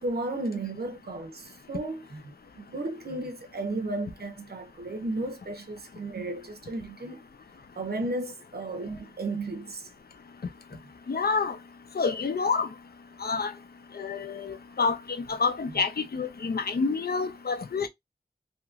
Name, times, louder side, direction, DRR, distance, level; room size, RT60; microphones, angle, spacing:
voice 1, 0.0-7.2 7.8-9.9 10.7-10.8, right 2 dB, 75° right, 0.8 m, -34 dB
voice 2, 11.1-11.6 11.9-12.7 13.2-13.5 14.0-15.0 15.3-17.9, left 4 dB, 75° left, 0.6 m, -28 dB
2.9 x 2.9 x 2.4 m
wide cardioid pair, 75°, 16 cm